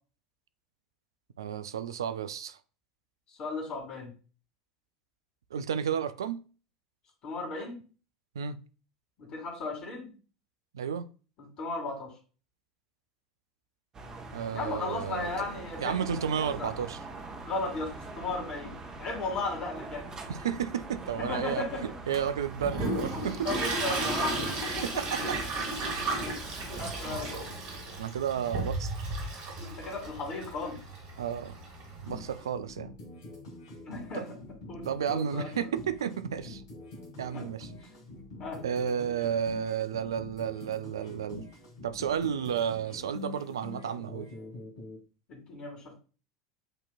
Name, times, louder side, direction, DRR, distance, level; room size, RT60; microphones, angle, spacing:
voice 1, 1.4-2.6 5.5-6.4 8.4-8.6 10.7-11.1 14.3-15.5 15.8-17.0 20.3-21.7 22.1-23.5 24.8-25.4 28.0-29.1 31.2-31.6 32.0-32.9 34.1-34.2 34.7-36.6 37.2-37.7 38.6-41.4 41.8-44.3, right 8 dB, 75° right, 0.4 m, -32 dB
voice 2, 3.3-4.1 7.2-7.8 9.2-10.1 11.6-12.1 14.5-16.1 16.4-16.7 17.4-17.9 18.2-18.7 19.0-20.1 21.3-21.8 23.4-24.9 26.3-26.4 26.8-27.5 29.6-30.8 33.8-34.2 34.7-35.5 37.3-37.4 38.4-38.6 45.3-45.9, left 3 dB, 45° left, 2.1 m, -35 dB
sound 1, 13.9-27.1, right 2 dB, 30° right, 1.0 m, -44 dB
Toilet flush, 22.1-32.4, right 2 dB, 55° right, 2.0 m, -34 dB
sound 2, 32.1-45.0, left 2 dB, 70° left, 1.5 m, -46 dB
7.8 x 2.9 x 2.3 m
figure-of-eight pair, 75°, 2 cm